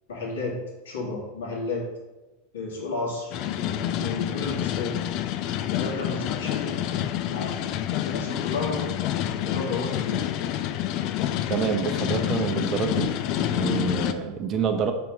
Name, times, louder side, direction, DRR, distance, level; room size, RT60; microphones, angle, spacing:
voice 1, 0.1-0.6 0.8-1.8 2.5-5.0 5.7-7.7 7.9-8.9 9.3-10.2, left 3 dB, 70° left, -4 dB, 2.6 m, -33 dB
sound 1, 3.3-14.1, left 11 dB, 45° left, 0.5 m, -28 dB
voice 2, 11.5-14.9, right 6 dB, 35° right, 7 dB, 0.9 m, -27 dB
6.7 x 4.5 x 5.3 m, 1.1 s
figure-of-eight pair, 85°, 0 cm